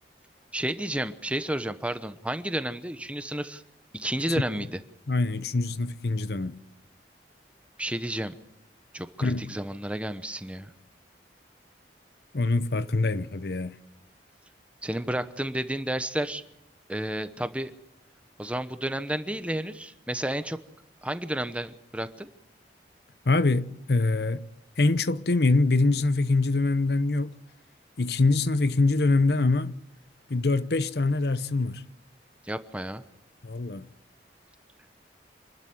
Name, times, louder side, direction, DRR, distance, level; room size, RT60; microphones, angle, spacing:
voice 1, 0.5-3.6 3.9-4.8 7.8-8.3 8.9-10.7 14.8-16.4 16.9-17.7 18.4-20.6 21.0-22.3 32.4-33.0, right 1 dB, 5° right, 0.9 m, -31 dB
voice 2, 5.1-6.6 9.2-9.5 12.3-13.8 23.3-24.5 24.8-27.3 28.0-29.7 30.3-31.8 33.4-33.9, left 3 dB, 65° left, 0.8 m, -24 dB
26.5 x 12.5 x 9.6 m
head